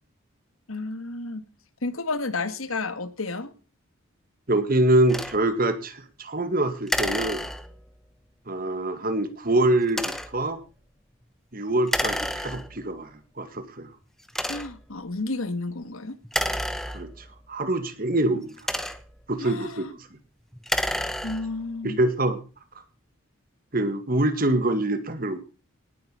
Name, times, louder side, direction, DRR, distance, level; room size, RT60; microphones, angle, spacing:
voice 1, 0.7-1.5 1.8-3.5 14.5-16.2 19.4-19.9 21.2-22.0, left 3 dB, 80° left, 12 dB, 1.6 m, -31 dB
voice 2, 4.5-7.4 8.5-10.6 11.5-13.1 13.4-13.9 16.9-17.1 17.5-18.5 19.3-19.9 21.8-22.4 23.7-25.4, right 1 dB, 40° right, 10 dB, 1.9 m, -24 dB
sound 1, 5.1-5.4 6.9-7.9 9.9-10.4 11.9-12.9 13.6-13.7 14.3-14.9 16.2-17.4 18.3-19.2 20.5-21.6, equal, ahead, 1.0 m, -30 dB
19.0 x 8.0 x 5.5 m, 0.35 s
head